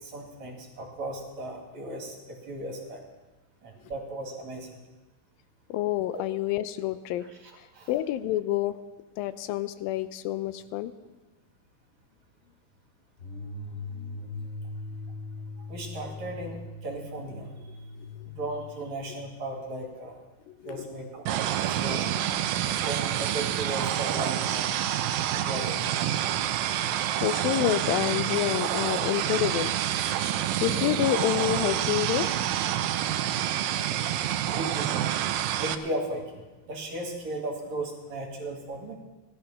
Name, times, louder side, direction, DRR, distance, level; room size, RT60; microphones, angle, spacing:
voice 1, 0.0-3.0 3.6-4.7 7.2-7.3 7.7-7.9 15.7-17.5 18.3-20.2 20.6-22.1 22.8-24.8 25.3-25.7 29.0-29.1 30.1-30.3 34.1-34.2 34.5-34.9 35.6-36.4 36.7-38.9, right 1 dB, 55° right, 1 dB, 3.3 m, -36 dB
voice 2, 5.7-7.3 7.6-8.8 9.2-10.9 13.9-14.5 18.0-18.1 20.5-20.9 27.2-29.7 30.6-32.3, left 13 dB, 90° left, 14 dB, 2.4 m, -28 dB
sound 1, 13.2-18.8, left 2 dB, 35° left, 2.8 m, -40 dB
sound 2, 21.3-35.8, right 11 dB, 90° right, 2.4 m, -28 dB
16.5 x 12.0 x 5.7 m, 1.2 s
omnidirectional pair, 4.0 m